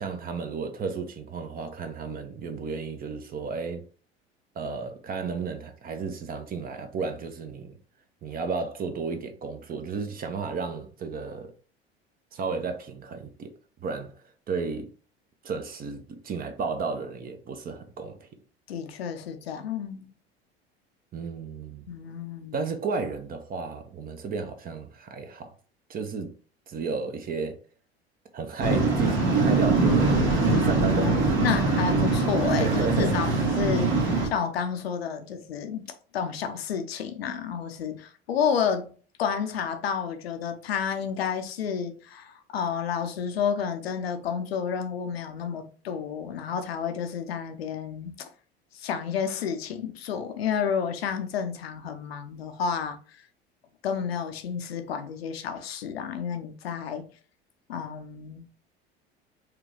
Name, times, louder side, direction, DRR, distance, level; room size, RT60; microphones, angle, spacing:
voice 1, 0.0-3.8 4.6-7.8 8.2-11.5 12.3-13.5 13.8-14.1 14.5-14.9 15.4-18.3 21.1-21.9 22.5-25.5 25.9-26.3 26.7-27.6 28.3-31.5 32.4-33.3, right 4 dB, 30° right, 0.8 m, -33 dB
voice 2, 18.7-20.1 21.9-22.5 31.0-38.9 39.2-48.3 48.7-53.2 53.8-57.1 57.7-58.4, left 7 dB, 70° left, 0.7 m, -30 dB
Waves surf, 28.6-34.3, right 3 dB, 50° right, 1.7 m, -23 dB
5.0 x 3.1 x 3.0 m
figure-of-eight pair, 70°, 32 cm